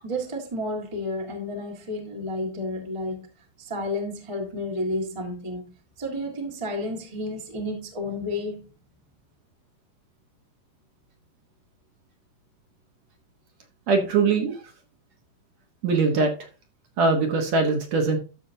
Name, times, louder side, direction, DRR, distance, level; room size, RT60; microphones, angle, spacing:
voice 1, 0.0-3.3 3.6-5.6 6.0-8.6, left 1 dB, 20° right, 0.7 m, -31 dB
voice 2, 13.9-14.6 15.8-16.3 17.0-18.2, right 4 dB, 60° right, 2.1 m, -21 dB
12.0 x 6.7 x 2.7 m
omnidirectional pair, 4.1 m